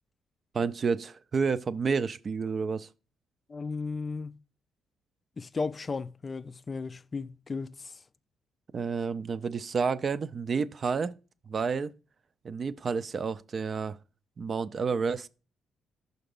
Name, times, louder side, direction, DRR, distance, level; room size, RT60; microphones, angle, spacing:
voice 1, 0.5-2.9 8.7-11.1 11.5-11.9 12.4-14.0 14.4-15.3, right 5 dB, 45° right, 0.4 m, -30 dB
voice 2, 3.5-4.3 5.4-7.9, left 4 dB, 30° left, 0.3 m, -35 dB
5.8 x 3.9 x 5.3 m
cardioid pair, 90°, 0 cm